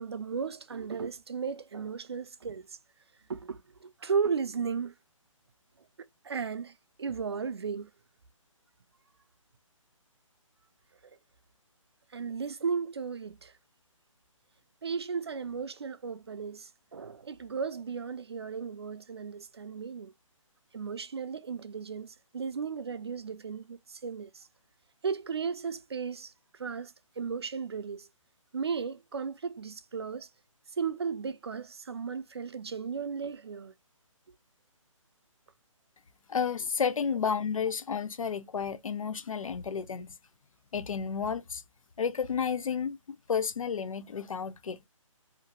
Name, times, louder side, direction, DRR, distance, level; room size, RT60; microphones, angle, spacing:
voice 1, 0.0-2.8 3.3-4.9 6.2-7.9 12.1-13.5 14.8-20.1 20.7-24.5 25.0-28.1 28.5-30.3 30.8-33.7, right 6 dB, 50° right, 0.4 m, -35 dB
voice 2, 36.3-40.1 40.7-41.6 42.0-43.0 43.3-44.8, left 6 dB, 80° left, 0.6 m, -31 dB
2.8 x 2.5 x 2.8 m
hypercardioid pair, 175°, 17 cm